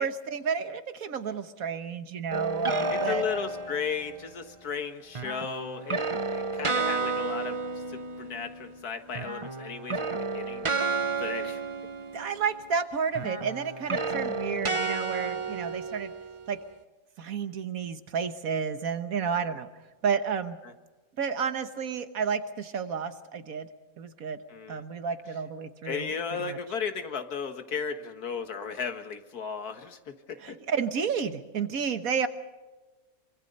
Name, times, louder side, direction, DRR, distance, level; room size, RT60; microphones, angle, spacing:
voice 1, 0.0-3.2 12.1-16.1 16.5-16.6 17.2-19.7 20.0-20.6 21.2-23.7 24.0-24.4 24.7-26.1 26.4-26.6 30.4-32.3, right 6 dB, 70° right, 10 dB, 1.6 m, -31 dB
sound 1, 2.3-4.2 5.1-8.8 9.1-12.7 13.1-16.6, right 3 dB, 25° right, 0.8 m, -32 dB
voice 2, 2.9-11.6 20.6-20.7 24.5-24.8 25.8-30.6, left 6 dB, 80° left, 8 dB, 2.0 m, -35 dB
25.0 x 24.5 x 5.4 m, 1.2 s
omnidirectional pair, 1.6 m